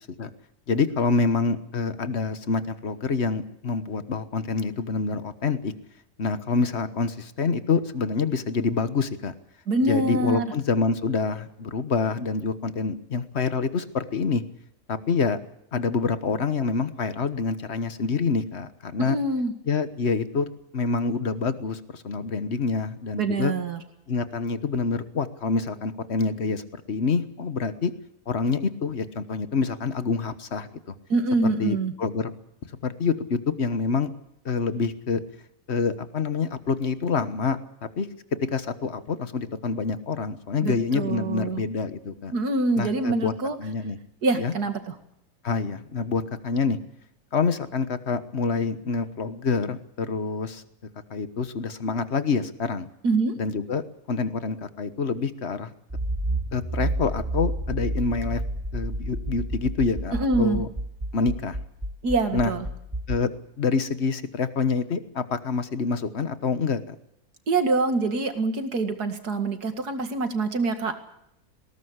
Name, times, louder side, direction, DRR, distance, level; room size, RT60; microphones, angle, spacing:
voice 1, 0.7-5.7 6.2-9.3 9.9-14.4 14.9-15.4 15.7-19.2 19.7-23.5 24.1-27.9 28.3-30.9 31.6-32.3 32.8-34.1 34.4-35.2 35.7-38.1 38.4-42.3 42.7-43.3 43.6-44.0 44.4-44.5 45.4-46.8 47.3-50.6 51.1-52.9 53.4-55.7 56.5-58.4 58.7-60.7 61.1-61.6 62.3-62.5 63.1-63.3 63.6-66.9, left 4 dB, 45° left, 12 dB, 1.5 m, -27 dB
voice 2, 9.7-10.5 19.0-19.5 23.2-23.8 31.1-31.9 40.6-41.6 42.3-43.6 44.2-44.9 53.0-53.3 60.1-60.6 62.0-62.7 67.5-70.9, right 3 dB, 85° right, 7 dB, 2.7 m, -25 dB
Accelerating revving vroom, 55.9-63.2, right 1 dB, 20° right, 2.2 m, -30 dB
20.0 x 18.0 x 8.1 m, 0.78 s
omnidirectional pair, 1.6 m